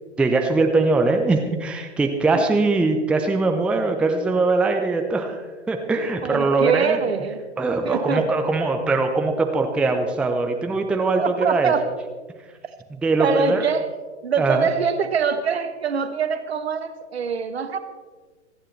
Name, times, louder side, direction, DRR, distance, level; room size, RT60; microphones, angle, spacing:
voice 1, 0.2-7.0 7.6-11.7 13.0-13.6 14.4-14.7, right 3 dB, 5° right, 5 dB, 0.6 m, -21 dB
voice 2, 6.2-7.4 7.8-8.3 11.2-12.0 13.2-13.9 14.2-17.8, right 6 dB, 60° right, 9 dB, 1.4 m, -24 dB
27.5 x 9.9 x 3.2 m, 1.4 s
figure-of-eight pair, 110°, 35 cm